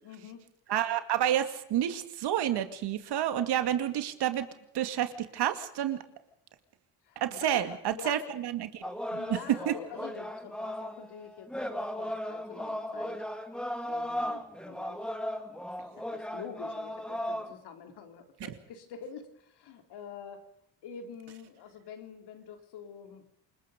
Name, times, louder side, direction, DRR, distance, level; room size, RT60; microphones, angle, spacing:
voice 1, 0.0-0.4 7.0-7.6 7.9-8.3 8.8-13.2 13.8-15.0 16.0-20.4 20.8-23.2, left 7 dB, 65° left, 6 dB, 4.0 m, -46 dB
voice 2, 0.7-4.5 4.7-6.0 7.2-8.8 9.7-9.8, right 11 dB, 65° right, 9 dB, 2.5 m, -29 dB
sound 1, 8.8-17.5, equal, ahead, 2.2 m, -36 dB
28.0 x 20.0 x 5.3 m, 0.78 s
cardioid pair, 115°, 42 cm